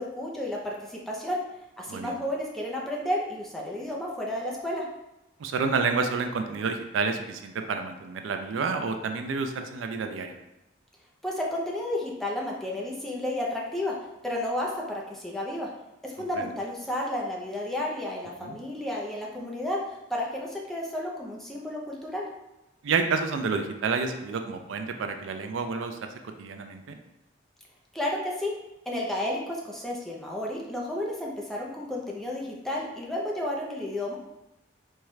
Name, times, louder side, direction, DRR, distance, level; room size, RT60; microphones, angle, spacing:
voice 1, 0.0-1.4 1.8-4.9 11.2-13.9 14.2-15.7 16.0-22.3 27.9-28.5 28.9-34.2, left 1 dB, ahead, -3 dB, 0.5 m, -32 dB
voice 2, 5.4-10.3 16.2-16.3 18.4-18.6 22.8-26.1 26.4-27.0, right 4 dB, 85° right, 6 dB, 0.4 m, -29 dB
4.4 x 2.4 x 3.1 m, 0.93 s
head